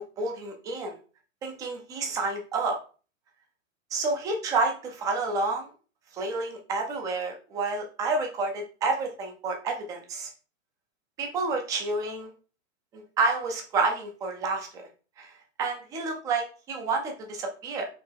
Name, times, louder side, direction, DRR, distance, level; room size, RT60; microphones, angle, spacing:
voice 1, 0.2-1.0 1.4-2.8 3.9-5.7 6.1-10.3 11.2-12.3 12.9-14.7 15.2-15.3 15.6-17.9, right 3 dB, 10° right, 3 dB, 0.3 m, -29 dB
4.4 x 2.9 x 3.3 m, 0.37 s
hypercardioid pair, 140°, 39 cm